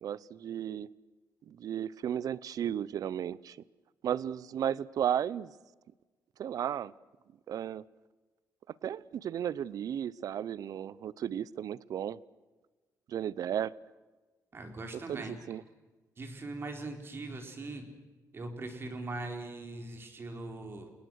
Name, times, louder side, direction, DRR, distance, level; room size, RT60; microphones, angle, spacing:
voice 1, 0.0-0.9 1.5-3.6 4.0-5.5 6.4-6.9 7.5-7.8 8.8-12.2 13.1-13.7 15.1-15.6, right 9 dB, 65° right, 21 dB, 0.7 m, -34 dB
voice 2, 14.5-15.4 16.2-17.8 18.3-20.9, right 2 dB, 35° right, 4 dB, 4.2 m, -40 dB
30.0 x 18.5 x 6.4 m, 1.3 s
cardioid pair, 125°, 7 cm